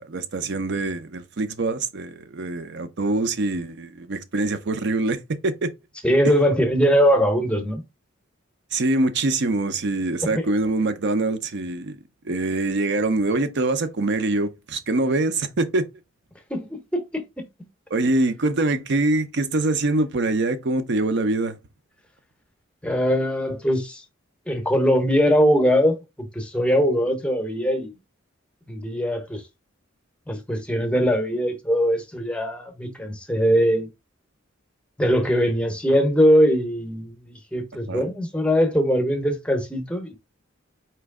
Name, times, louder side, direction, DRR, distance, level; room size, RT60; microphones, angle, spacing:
voice 1, 0.0-5.7 8.7-12.0 12.2-15.8 17.9-21.6 37.9-38.0, right 2 dB, 60° right, 0.6 m, -24 dB
voice 2, 6.0-7.8 10.2-10.4 16.5-17.5 22.8-24.0 24.5-27.9 28.7-29.4 30.3-33.9 35.0-40.2, equal, 5° left, 0.8 m, -21 dB
4.5 x 3.0 x 3.5 m
head